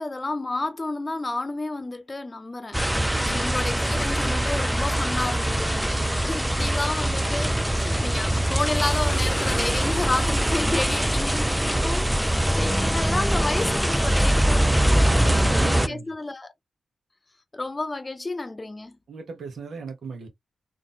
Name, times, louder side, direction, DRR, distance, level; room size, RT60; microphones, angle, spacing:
voice 1, 0.0-16.5 17.5-19.0, left 2 dB, 35° left, 0.7 m, -31 dB
sound 1, 2.7-15.9, right 1 dB, 5° right, 0.3 m, -23 dB
voice 2, 3.1-3.4 14.8-16.1 19.1-20.3, right 5 dB, 75° right, 1.0 m, -37 dB
sound 2, 8.9-13.9, right 2 dB, 60° right, 1.9 m, -37 dB
3.7 x 2.6 x 2.5 m
supercardioid pair, 45°, 0 cm